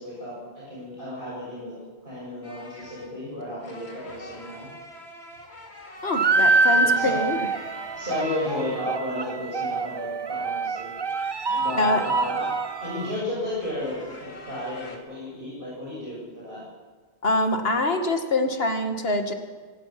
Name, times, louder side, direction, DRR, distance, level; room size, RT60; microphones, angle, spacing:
voice 1, 0.0-1.8 2.0-4.7 6.7-7.2 7.9-10.9 11.6-12.5 12.8-16.6, left 1 dB, 55° right, -7 dB, 7.2 m, -33 dB
sound 1, 2.4-8.8 11.5-12.4 13.4-15.0, left 1 dB, 85° left, 2.8 m, -45 dB
voice 2, 6.0-7.4 11.7-12.0 17.2-19.3, left 2 dB, 65° left, 5 dB, 2.2 m, -24 dB
sound 2, 6.1-13.1, right 3 dB, 30° right, 0.5 m, -25 dB
sound 3, 6.4-8.2 11.0-13.1, right 2 dB, 70° right, 3.7 m, -42 dB
24.5 x 18.0 x 6.0 m, 1.4 s
omnidirectional pair, 1.1 m